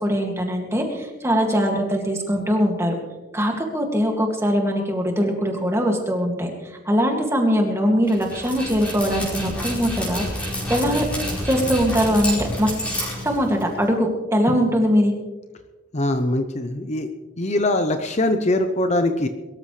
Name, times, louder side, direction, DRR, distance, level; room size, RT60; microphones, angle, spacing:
voice 1, 0.0-2.9 3.3-6.5 6.9-10.2 10.6-11.1 11.4-12.7 13.2-15.1, equal, 15° right, 2 dB, 2.2 m, -21 dB
Dog, 8.1-13.9, equal, 5° left, 4.7 m, -29 dB
voice 2, 15.9-17.1 17.4-19.3, left 1 dB, 35° left, 7 dB, 0.7 m, -22 dB
22.5 x 13.5 x 3.3 m, 1.2 s
head